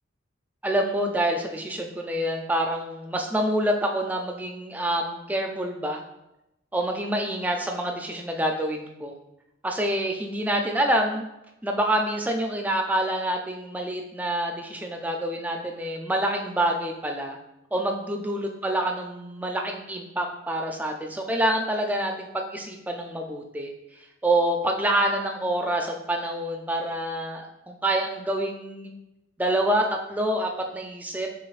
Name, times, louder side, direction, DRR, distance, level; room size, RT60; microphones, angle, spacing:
voice 1, 0.6-6.0 6.7-9.1 9.6-11.3 11.6-17.4 17.7-23.7 24.2-28.9 29.4-31.4, right 1 dB, 10° right, 2 dB, 0.3 m, -27 dB
6.4 x 2.3 x 2.4 m, 0.91 s
head